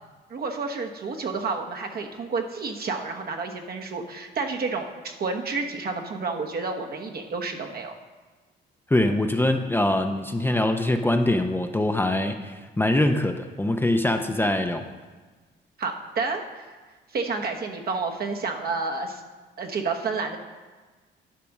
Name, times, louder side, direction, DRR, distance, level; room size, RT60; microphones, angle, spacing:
voice 1, 0.3-7.9 15.8-16.7 17.1-19.2 19.6-20.4, right 4 dB, 50° right, 3 dB, 1.2 m, -30 dB
voice 2, 8.9-14.9, left 1 dB, 10° left, 5 dB, 0.6 m, -23 dB
10.5 x 5.1 x 6.0 m, 1.3 s
cardioid pair, 90°, 20 cm